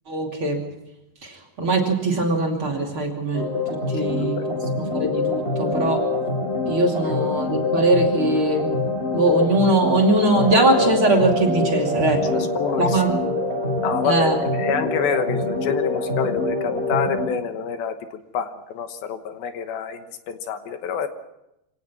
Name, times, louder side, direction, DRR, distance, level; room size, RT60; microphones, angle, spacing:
voice 1, 0.1-0.6 1.2-3.5 3.9-6.0 6.6-8.7 9.1-12.2 12.8-13.2 14.0-14.4, right 2 dB, 35° right, 0 dB, 3.1 m, -21 dB
sound 1, 3.3-17.3, left 2 dB, 15° left, 3.3 m, -25 dB
voice 2, 3.9-4.5 7.0-7.1 12.1-13.3 13.8-21.1, left 7 dB, 75° left, 8 dB, 2.9 m, -28 dB
25.5 x 18.0 x 5.9 m, 0.86 s
omnidirectional pair, 4.6 m